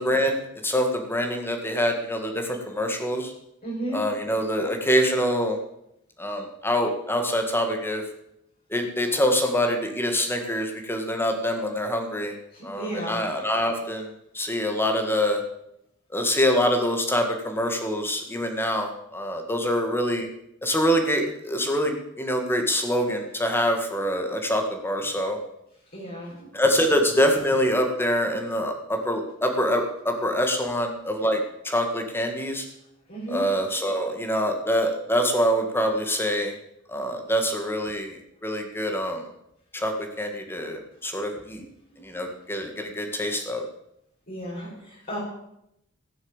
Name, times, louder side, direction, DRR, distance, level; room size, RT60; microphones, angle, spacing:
voice 1, 0.0-3.3 3.9-5.6 6.2-8.0 8.7-12.3 12.6-15.4 16.1-20.3 20.6-25.4 26.5-32.6 33.3-36.5 36.9-38.2 38.4-39.2 39.7-41.6 42.0-43.6, equal, 10° left, 4 dB, 1.8 m, -25 dB
voice 2, 3.6-4.0 12.5-13.2 25.9-26.5 33.1-33.5 42.0-42.1 44.3-45.2, right 1 dB, 45° left, -7 dB, 4.9 m, -33 dB
16.0 x 7.1 x 7.3 m, 0.81 s
head